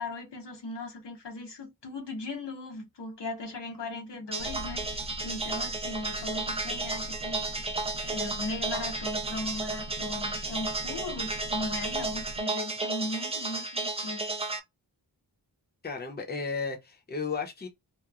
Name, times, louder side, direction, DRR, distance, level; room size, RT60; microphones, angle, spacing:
voice 1, 0.0-7.8 8.0-14.4, left 2 dB, 80° left, 1.0 m, -38 dB
sound 1, 4.3-14.6, right 3 dB, 15° right, 0.4 m, -33 dB
sound 2, 4.4-12.4, equal, 65° right, 0.7 m, -43 dB
voice 2, 15.8-17.7, left 5 dB, 25° left, 0.7 m, -34 dB
2.9 x 2.1 x 2.3 m
wide cardioid pair, 75°, 41 cm